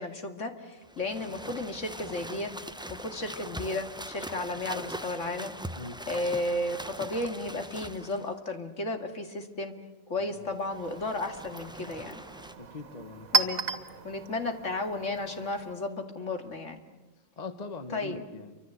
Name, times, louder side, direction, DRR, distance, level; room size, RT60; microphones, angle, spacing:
voice 1, 0.0-2.5 2.9-5.5 6.1-9.8 10.1-12.2 13.3-13.6 14.0-16.8 17.9-18.2, left 2 dB, 65° left, 6 dB, 2.6 m, -33 dB
sound 1, 0.8-8.3 10.6-12.5, right 1 dB, 5° right, 0.6 m, -42 dB
Chink clink, 10.4-15.9, right 5 dB, 90° right, 1.9 m, -34 dB
voice 2, 12.6-13.5 17.4-18.6, left 3 dB, 30° left, 9 dB, 1.4 m, -41 dB
29.0 x 25.0 x 8.2 m, 1.1 s
omnidirectional pair, 1.4 m